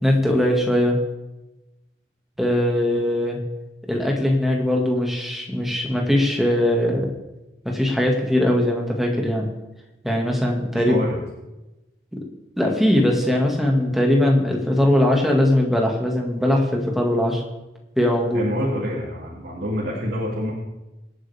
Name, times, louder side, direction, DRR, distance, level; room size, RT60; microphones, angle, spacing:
voice 1, 0.0-1.0 2.4-3.4 3.8-7.1 7.6-9.4 10.0-10.9 12.1-12.2 12.6-17.4 18.0-18.5, left 1 dB, ahead, 0 dB, 2.1 m, -20 dB
voice 2, 10.7-11.2 18.3-20.5, equal, 75° right, -6 dB, 3.0 m, -27 dB
25.0 x 8.9 x 3.6 m, 1.0 s
head